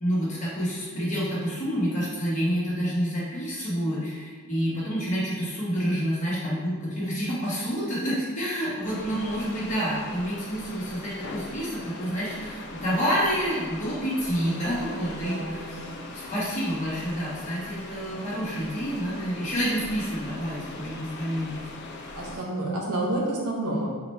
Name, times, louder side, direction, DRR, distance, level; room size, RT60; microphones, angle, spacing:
voice 1, 0.0-15.9 16.1-21.5 22.3-22.4, equal, 35° left, -7 dB, 1.1 m, -28 dB
sound 1, 8.8-22.4, left 2 dB, 50° left, 0.4 m, -40 dB
voice 2, 8.9-9.4 14.4-16.0 22.2-23.9, right 1 dB, 90° right, -2 dB, 0.9 m, -31 dB
4.1 x 2.5 x 3.2 m, 1.5 s
head